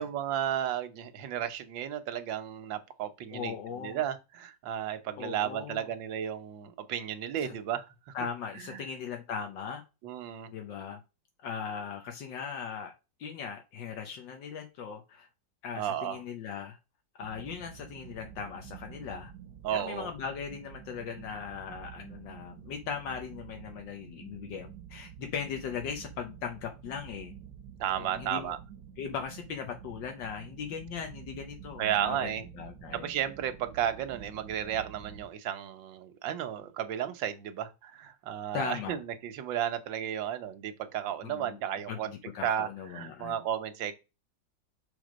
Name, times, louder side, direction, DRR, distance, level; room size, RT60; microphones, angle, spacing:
voice 1, 0.0-8.1 8.7-8.8 10.0-10.5 15.7-16.2 19.6-20.1 27.8-28.6 31.8-32.4 32.9-42.1 42.4-42.7 42.9-43.9, right 10 dB, 85° right, 1.6 m, -33 dB
voice 2, 3.3-4.0 5.2-5.9 7.4-7.5 8.1-9.8 10.5-11.0 11.4-12.9 13.2-15.3 15.6-16.8 17.2-19.3 19.7-27.3 28.0-28.5 29.0-33.1 38.5-39.0 41.2-41.6 41.9-43.4, left 7 dB, 75° left, 1.6 m, -39 dB
sound 1, 17.2-35.3, right 9 dB, 65° right, 1.3 m, -49 dB
6.3 x 3.5 x 5.1 m
omnidirectional pair, 2.0 m